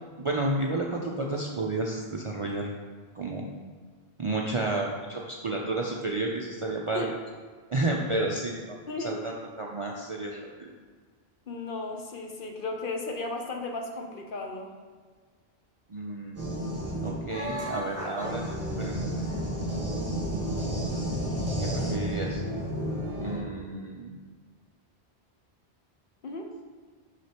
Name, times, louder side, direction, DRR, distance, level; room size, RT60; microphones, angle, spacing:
voice 1, 0.2-2.7 3.1-3.5 4.2-7.0 7.7-10.7 15.9-16.4 17.0-18.4 18.8-19.0 19.3-19.4 21.6-22.4 23.2-24.1, right 2 dB, 45° right, -1 dB, 0.4 m, -31 dB
voice 2, 8.9-9.2 11.5-14.7 26.2-26.5, left 2 dB, 55° left, 2 dB, 0.8 m, -35 dB
sound 1, 16.3-23.4, equal, 15° right, 1.3 m, -31 dB
6.2 x 5.8 x 2.9 m, 1.5 s
omnidirectional pair, 1.1 m